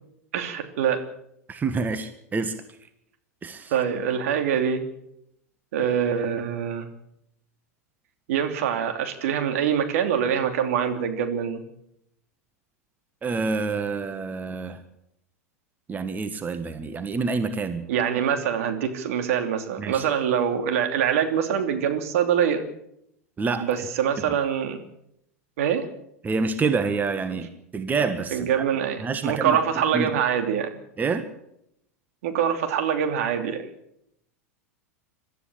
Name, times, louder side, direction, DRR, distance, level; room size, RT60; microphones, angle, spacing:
voice 1, 0.3-1.0 3.7-4.8 5.7-6.9 8.3-11.6 17.9-22.6 23.6-24.8 25.6-25.9 28.3-30.8 32.2-33.7, right 8 dB, 65° right, 6 dB, 3.0 m, -24 dB
voice 2, 1.5-2.5 3.4-3.7 13.2-14.8 15.9-17.9 19.8-20.0 23.4-23.7 26.2-28.7 29.0-29.6 29.9-30.1 31.0-31.2, right 4 dB, 20° right, 10 dB, 1.6 m, -27 dB
23.0 x 13.0 x 8.8 m, 0.77 s
hypercardioid pair, 90°, 8 cm